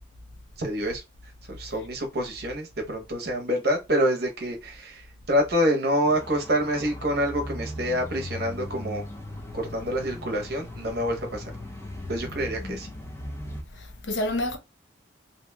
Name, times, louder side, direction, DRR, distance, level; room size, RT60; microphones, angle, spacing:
voice 1, 0.6-1.0 1.5-9.0 9.5-11.5 12.1-12.9, equal, 55° right, 0.8 m, -27 dB
sound 1, 6.1-13.6, left 1 dB, 15° left, 0.5 m, -38 dB
voice 2, 13.7-14.6, left 1 dB, 65° left, 0.6 m, -29 dB
2.9 x 2.5 x 2.2 m
head